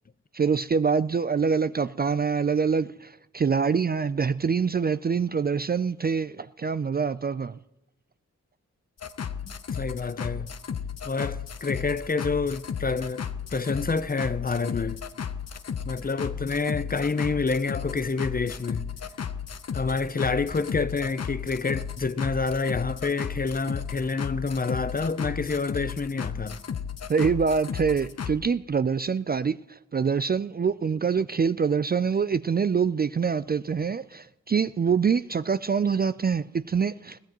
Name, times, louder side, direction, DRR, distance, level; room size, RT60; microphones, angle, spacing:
voice 1, 0.3-7.5 27.1-37.2, right 6 dB, 30° right, 0.4 m, -25 dB
sound 1, 9.0-28.4, left 7 dB, 55° left, 0.8 m, -34 dB
voice 2, 9.7-10.5 11.1-15.0 15.9-18.8 19.7-26.6, left 4 dB, 30° left, 0.6 m, -28 dB
21.0 x 15.0 x 3.0 m
cardioid pair, 50°, 31 cm